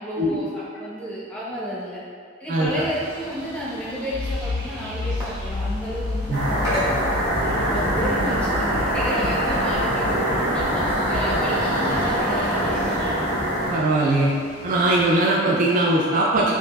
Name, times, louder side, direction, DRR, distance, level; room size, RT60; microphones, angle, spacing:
voice 1, 0.0-2.0 2.4-7.0 7.7-13.0, equal, 5° left, -8 dB, 0.8 m, -32 dB
sound 1, 2.7-15.1, equal, 15° right, 1.1 m, -36 dB
Accelerating revving vroom, 4.1-11.4, left 3 dB, 80° left, 0.3 m, -31 dB
sound 2, 6.3-13.7, right 1 dB, 70° right, 1.2 m, -23 dB
voice 2, 13.7-14.3 14.6-16.5, right 2 dB, 45° right, -4 dB, 0.4 m, -20 dB
5.1 x 2.6 x 2.2 m, 2.1 s
head